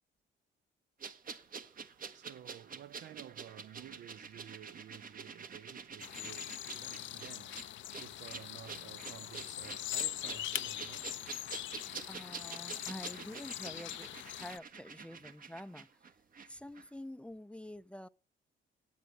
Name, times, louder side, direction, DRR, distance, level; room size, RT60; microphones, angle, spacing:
sound 1, 1.0-16.5 16.7-16.9, right 6 dB, 45° right, 1.2 m, -48 dB
voice 1, 1.4-11.3 11.9-12.0 15.1-15.3, right 11 dB, 65° right, 0.6 m, -53 dB
sound 2, 6.0-14.6, left 13 dB, 70° left, 0.6 m, -42 dB
voice 2, 12.1-15.9 16.5-18.1, left 1 dB, 5° left, 0.5 m, -47 dB
9.4 x 8.3 x 9.2 m
cardioid pair, 90°, 20 cm